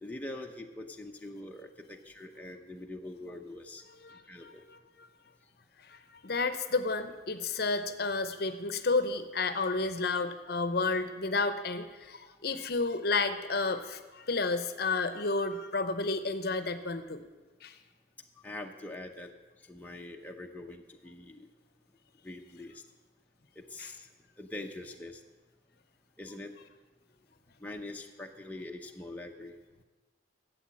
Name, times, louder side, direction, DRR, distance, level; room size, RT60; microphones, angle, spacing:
voice 1, 0.0-3.8 4.3-4.6 18.4-19.3 19.7-21.5 22.2-22.7 23.6-24.1 24.4-25.2 26.2-26.5 27.6-29.6, left 2 dB, 10° left, 1 dB, 0.7 m, -43 dB
voice 2, 4.0-5.1 5.8-17.2 17.6-17.8 23.8-23.9, left 3 dB, 55° left, 10 dB, 0.7 m, -31 dB
12.5 x 8.0 x 7.6 m, 1.3 s
head